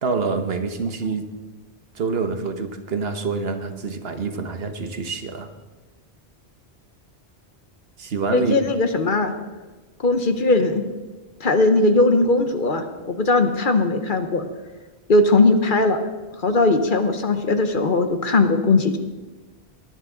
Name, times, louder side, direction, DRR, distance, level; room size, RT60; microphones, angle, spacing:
voice 1, 0.0-1.3 1.9-5.5 8.0-8.6, right 4 dB, 65° right, 7 dB, 1.3 m, -26 dB
voice 2, 8.3-9.3 10.0-10.8 11.4-14.5 15.1-16.0 16.4-19.0, left 2 dB, 50° left, 7 dB, 1.1 m, -19 dB
18.0 x 11.5 x 3.9 m, 1.3 s
omnidirectional pair, 1.1 m